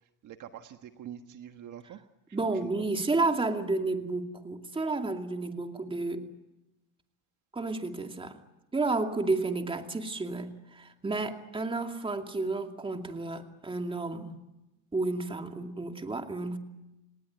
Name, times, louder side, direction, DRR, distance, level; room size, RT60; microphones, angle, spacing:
voice 1, 0.2-2.0 2.3-2.7, right 10 dB, 50° right, 7 dB, 1.5 m, -45 dB
voice 2, 2.3-6.3 7.5-8.4 8.7-14.4 14.9-16.6, right 3 dB, 15° right, 5 dB, 2.5 m, -31 dB
29.0 x 19.0 x 9.5 m, 1.0 s
cardioid pair, 115°, 38 cm